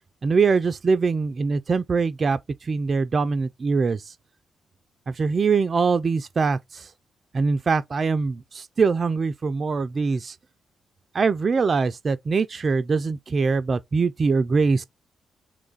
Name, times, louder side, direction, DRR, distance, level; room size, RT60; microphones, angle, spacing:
voice 1, 0.2-4.1 5.1-6.9 7.3-10.4 11.1-14.8, right 4 dB, 45° right, 0.3 m, -23 dB
3.0 x 2.3 x 3.9 m
supercardioid pair, 55°, 0 cm